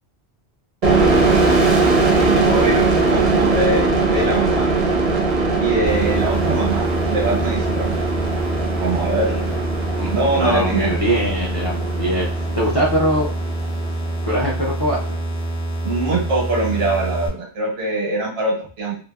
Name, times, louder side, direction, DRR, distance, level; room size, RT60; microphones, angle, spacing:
sound 1, 0.8-14.3, right 3 dB, 45° right, 0.5 m, -20 dB
voice 1, 2.1-2.8 3.1-4.7 5.6-8.0 8.8-9.5 10.1-10.9 15.8-19.0, right 2 dB, 85° right, -2 dB, 1.3 m, -23 dB
sound 2, 5.9-17.3, right 1 dB, 55° left, 0.9 m, -26 dB
voice 2, 9.9-12.3 12.5-13.3 14.2-15.2, equal, 40° left, -4 dB, 0.4 m, -22 dB
2.7 x 2.3 x 2.3 m, 0.40 s
omnidirectional pair, 1.1 m